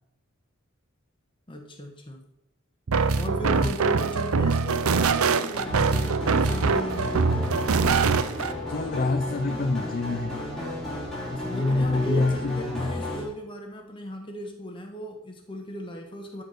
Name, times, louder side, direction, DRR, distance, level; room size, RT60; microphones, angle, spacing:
voice 1, 1.5-2.3 3.1-7.5 11.2-16.4, equal, 25° left, 3 dB, 1.4 m, -37 dB
sound 1, 2.9-8.5, right 4 dB, 90° right, 0.6 m, -23 dB
sound 2, 5.5-13.2, left 1 dB, ahead, 3.2 m, -33 dB
voice 2, 8.7-10.4 11.3-12.3, left 3 dB, 45° left, 8 dB, 0.4 m, -26 dB
12.5 x 4.6 x 6.4 m, 0.87 s
head